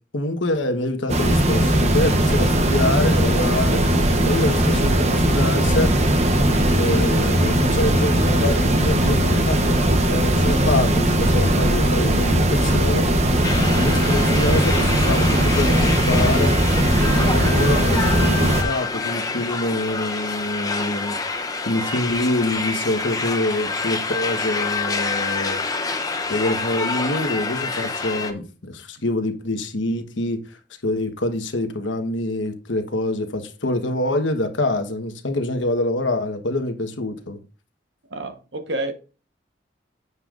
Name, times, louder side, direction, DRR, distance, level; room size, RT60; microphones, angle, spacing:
voice 1, 0.1-3.8 4.2-5.9 6.8-13.1 13.8-16.5 17.1-21.2 21.7-25.6 26.3-30.4 30.8-37.4, left 1 dB, 80° left, 1.2 m, -25 dB
sound 1, 1.1-18.6, right 1 dB, 35° right, 0.9 m, -19 dB
sound 2, 13.4-28.3, left 4 dB, 20° left, 0.6 m, -27 dB
voice 2, 38.1-38.9, right 2 dB, 70° right, 1.1 m, -28 dB
9.6 x 6.9 x 2.5 m
head